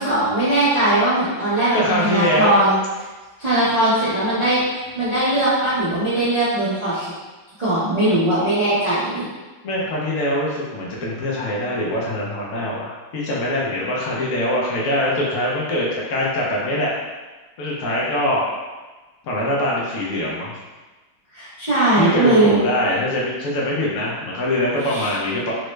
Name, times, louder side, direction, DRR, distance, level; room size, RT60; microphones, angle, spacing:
voice 1, 0.0-2.8 3.4-7.1 7.6-9.3 21.3-22.6 24.9-25.1, right 1 dB, 60° right, -13 dB, 0.4 m, -19 dB
voice 2, 1.7-2.5 3.8-3.9 9.6-16.9 17.6-18.4 19.2-20.5 21.9-25.5, left 1 dB, 75° left, -5 dB, 0.7 m, -23 dB
3.6 x 2.1 x 3.1 m, 1.2 s
omnidirectional pair, 2.2 m